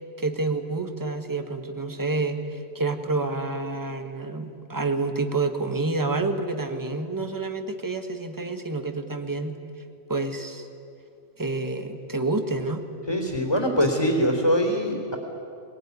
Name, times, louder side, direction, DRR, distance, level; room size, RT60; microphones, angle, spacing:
voice 1, 0.2-9.6 10.1-10.7 11.4-12.8, right 3 dB, 15° right, 7 dB, 1.4 m, -28 dB
voice 2, 13.1-15.2, equal, 20° left, 2 dB, 3.5 m, -23 dB
21.5 x 20.0 x 9.7 m, 2.6 s
omnidirectional pair, 1.3 m